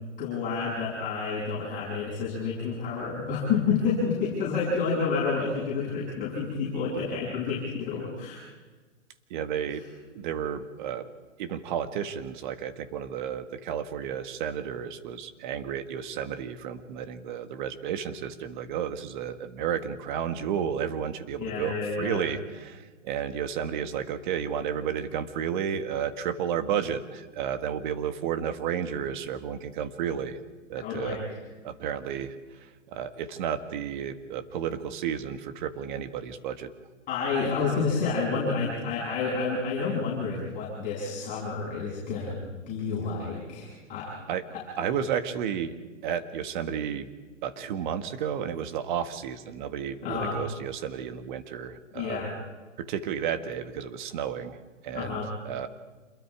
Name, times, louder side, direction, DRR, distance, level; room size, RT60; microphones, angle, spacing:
voice 1, 0.2-8.4 21.4-22.2 30.8-31.2 37.1-44.1 44.5-44.6 50.0-50.4 51.9-52.3 54.9-55.3, left 5 dB, 20° left, -7 dB, 7.9 m, -29 dB
voice 2, 9.3-9.8 10.2-11.1 11.4-30.4 30.7-31.2 31.6-36.7 44.3-44.4 44.8-45.7 46.0-47.1 47.4-52.2 52.8-55.7, right 8 dB, 40° right, 9 dB, 1.7 m, -32 dB
27.5 x 22.0 x 4.9 m, 1.3 s
hypercardioid pair, 140°, 37 cm